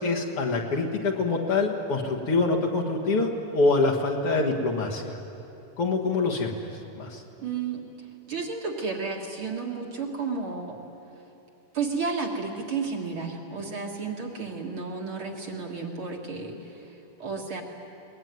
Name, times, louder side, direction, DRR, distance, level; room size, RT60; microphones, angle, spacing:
voice 1, 0.0-5.2 5.8-6.5 7.0-7.2, left 3 dB, 50° left, 0 dB, 2.3 m, -25 dB
voice 2, 7.4-7.8 8.3-10.8 11.7-17.6, right 4 dB, 50° right, 1 dB, 2.2 m, -32 dB
22.0 x 20.0 x 9.5 m, 2.8 s
omnidirectional pair, 3.5 m